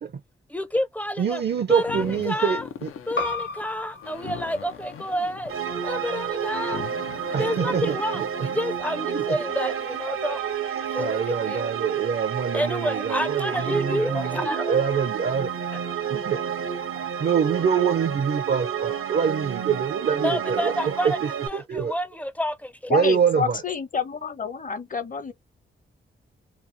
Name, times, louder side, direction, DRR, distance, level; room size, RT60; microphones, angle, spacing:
voice 1, 0.5-1.4 1.7-2.7 3.1-5.5 5.8-6.8 7.2-10.4 10.9-11.6 12.5-14.8 20.1-21.2 21.5-23.1, equal, 5° left, 0.4 m, -29 dB
voice 2, 1.2-2.9 7.3-8.3 9.1-9.4 11.0-15.5 16.1-16.4 17.2-21.9 22.9-23.6, right 7 dB, 50° right, 0.5 m, -25 dB
sound 1, 1.7-8.7, left 8 dB, 85° left, 0.5 m, -40 dB
sound 2, 3.2-8.3, left 3 dB, 65° left, 1.0 m, -37 dB
sound 3, 5.5-21.5, right 8 dB, 85° right, 0.7 m, -30 dB
voice 3, 22.9-25.3, left 5 dB, 40° left, 0.7 m, -28 dB
2.8 x 2.3 x 2.5 m
cardioid pair, 85°, 21 cm